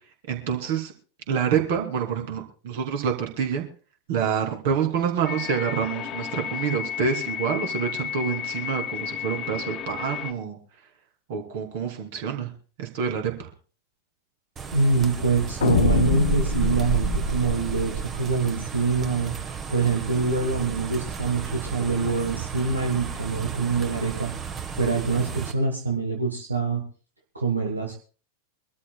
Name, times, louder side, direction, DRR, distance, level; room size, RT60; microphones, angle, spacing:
voice 1, 0.3-0.9 1.3-3.6 4.1-10.6 11.3-12.5 12.8-13.5, right 7 dB, 50° right, 3 dB, 2.8 m, -27 dB
sound 1, 5.2-10.3, left 10 dB, 30° left, 1.4 m, -32 dB
sound 2, 14.6-25.5, right 5 dB, 25° right, 1.3 m, -31 dB
voice 2, 14.7-19.3 19.7-24.3 24.8-26.8 27.3-27.9, right 4 dB, 80° right, 1 dB, 1.6 m, -25 dB
sound 3, 15.6-18.7, left 11 dB, 60° left, 0.5 m, -27 dB
24.5 x 13.0 x 2.3 m, 0.37 s
figure-of-eight pair, 90°, 0 cm